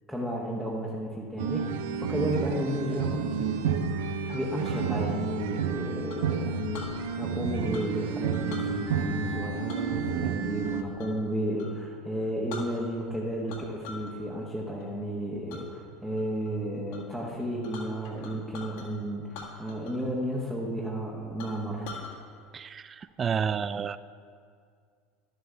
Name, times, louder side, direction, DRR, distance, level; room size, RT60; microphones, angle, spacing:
voice 1, 0.1-3.8 4.3-21.9, right 1 dB, 5° right, -4 dB, 1.4 m, -33 dB
sound 1, 1.4-10.8, right 6 dB, 65° right, 0.6 m, -30 dB
Chink clink, 4.3-4.9 6.1-6.9 7.7-8.0 8.3-8.7 9.7-11.2 11.5-11.7 12.2-12.3 12.5-13.1 13.5-14.1 14.5-14.9 15.5-15.6 16.1-16.5 16.9-17.0 17.3-18.9 19.3-20.1 20.3-20.4 20.9-21.0 21.4-22.1, left 4 dB, 60° left, 1.7 m, -44 dB
voice 2, 22.5-24.0, right 7 dB, 30° right, 15 dB, 0.3 m, -30 dB
12.0 x 7.9 x 3.4 m, 2.1 s
figure-of-eight pair, 70°, 0 cm